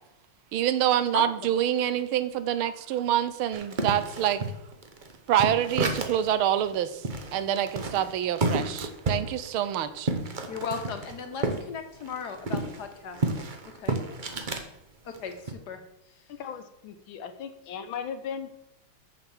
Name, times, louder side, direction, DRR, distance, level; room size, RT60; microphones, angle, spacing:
voice 1, 0.5-4.4 5.3-7.0 7.3-10.1, right 11 dB, 90° right, 12 dB, 1.6 m, -26 dB
sound 1, 3.5-6.3 6.7-6.8 7.0-11.6 11.9-14.7 15.1-15.5, right 3 dB, 45° right, 0.6 m, -31 dB
voice 2, 10.5-13.2 13.8-14.0 15.0-15.8, left 6 dB, 55° left, 7 dB, 1.5 m, -36 dB
voice 3, 16.3-18.5, left 7 dB, 75° left, 9 dB, 1.7 m, -37 dB
7.0 x 6.4 x 7.2 m, 0.86 s
omnidirectional pair, 2.3 m